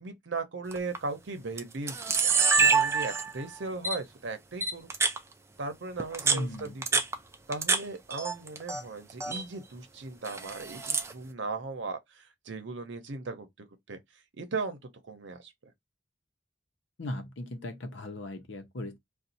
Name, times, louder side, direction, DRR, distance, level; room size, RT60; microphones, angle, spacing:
voice 1, 0.0-4.9 5.6-7.0 7.5-14.0 14.3-14.8 15.1-15.5, right 3 dB, 80° right, 0.8 m, -37 dB
Camera, 0.7-1.0 1.6-1.7 1.9-3.4 3.8-4.0 4.6-5.2 6.0-7.8 8.1-8.8 9.1-9.4 10.2-11.1, right 4 dB, 15° right, 0.4 m, -26 dB
voice 2, 6.2-6.7 17.0-19.0, left 1 dB, 85° left, 0.8 m, -37 dB
2.6 x 2.3 x 4.1 m
head